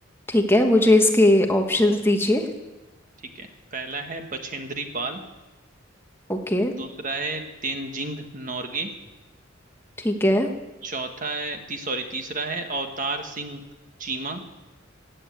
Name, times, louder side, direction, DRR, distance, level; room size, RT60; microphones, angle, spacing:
voice 1, 0.3-2.4 6.3-6.7 10.0-10.5, left 1 dB, 10° left, 4 dB, 1.2 m, -19 dB
voice 2, 3.3-5.2 6.8-8.9 10.8-13.6 14.0-14.4, right 3 dB, 40° right, 5 dB, 1.5 m, -31 dB
16.0 x 8.6 x 8.5 m, 1.1 s
head